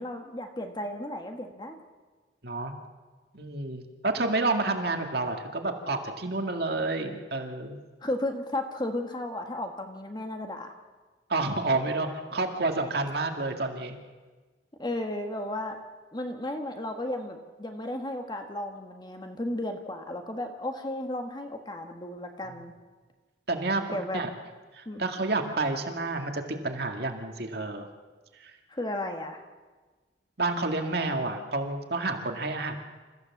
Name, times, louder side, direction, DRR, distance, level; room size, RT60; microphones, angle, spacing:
voice 1, 0.0-1.8 8.0-10.7 14.8-15.8 16.1-22.7 23.9-24.2 24.8-25.0 28.7-29.4, left 1 dB, 25° left, 5 dB, 1.5 m, -34 dB
voice 2, 3.3-7.8 11.3-14.0 23.5-24.3 24.7-27.9 28.4-28.5 30.4-32.8, right 3 dB, 60° right, 4 dB, 2.0 m, -29 dB
28.0 x 15.0 x 7.2 m, 1.4 s
head